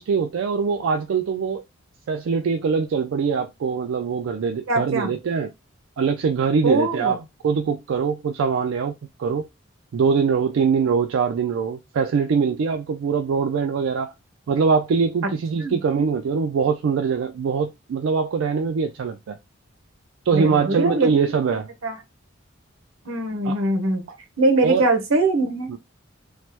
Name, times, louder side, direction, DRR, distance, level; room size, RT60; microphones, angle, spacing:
voice 1, 0.0-1.6 2.1-5.5 6.0-8.9 9.2-9.4 9.9-14.1 14.5-19.4 20.3-21.7 23.4-23.6 24.1-24.2 24.6-24.8 25.7-25.8, right 5 dB, 70° right, 0.3 m, -23 dB
voice 2, 4.7-5.1 6.6-7.2 15.6-15.8 20.3-21.1 21.8-22.0 23.1-24.0 24.4-25.8, right 2 dB, 90° right, 0.9 m, -22 dB
3.2 x 2.0 x 2.9 m
head